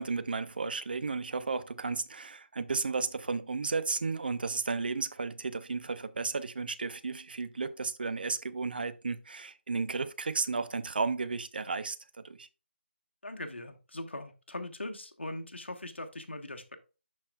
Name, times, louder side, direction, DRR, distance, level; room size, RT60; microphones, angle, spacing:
voice 1, 0.0-12.5, right 4 dB, 50° right, 0.6 m, -33 dB
voice 2, 13.2-16.8, left 1 dB, 75° left, 1.3 m, -40 dB
11.5 x 4.3 x 2.3 m
figure-of-eight pair, 155°, 6 cm